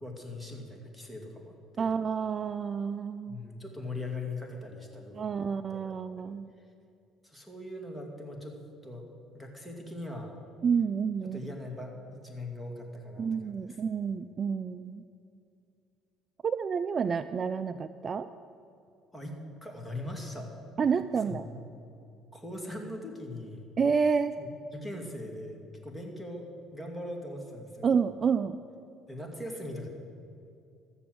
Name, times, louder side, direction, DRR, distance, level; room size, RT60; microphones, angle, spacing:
voice 1, 0.0-1.9 3.3-6.6 7.2-8.6 8.8-9.1 9.3-10.3 11.2-13.8 19.1-20.5 21.3-21.6 22.3-23.7 24.4-27.9 29.1-29.9, left 1 dB, 5° left, 0 dB, 2.3 m, -41 dB
voice 2, 1.8-3.4 5.1-6.5 10.6-11.5 13.2-15.0 16.4-18.3 20.8-21.5 23.8-24.4 27.8-28.6, right 6 dB, 40° right, 12 dB, 0.4 m, -29 dB
14.0 x 7.0 x 7.7 m, 2.5 s
cardioid pair, 95°, 0 cm